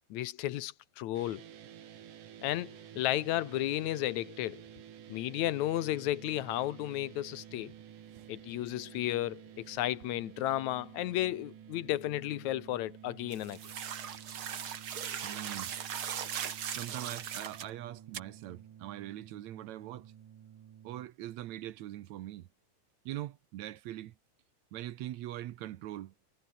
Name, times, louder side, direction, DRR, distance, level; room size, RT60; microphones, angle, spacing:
voice 1, 0.1-1.4 2.4-4.6 5.1-7.7 8.3-13.6, left 14 dB, 70° left, 2.2 m, -33 dB
sound 1, 1.1-21.1, right 9 dB, 85° right, 3.6 m, -52 dB
sound 2, 13.3-17.7 18.1-18.2, right 8 dB, 50° right, 2.1 m, -39 dB
voice 2, 15.2-15.7 16.7-20.1 20.8-22.5 23.1-24.1 24.7-26.1, right 14 dB, 70° right, 2.1 m, -42 dB
omnidirectional pair, 3.6 m